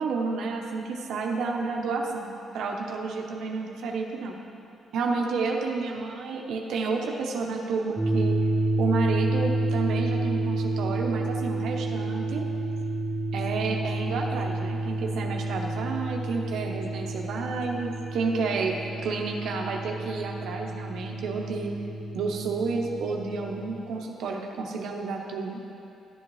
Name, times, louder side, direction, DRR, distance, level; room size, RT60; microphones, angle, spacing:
voice 1, 0.0-2.3 2.5-4.4 4.9-8.4 8.8-12.5 13.3-21.7 22.1-25.6, right 4 dB, 75° right, 1 dB, 0.8 m, -30 dB
sound 1, 8.0-23.8, right 2 dB, 25° right, 1.0 m, -30 dB
13.0 x 7.8 x 3.1 m, 2.6 s
cardioid pair, 90°, 0 cm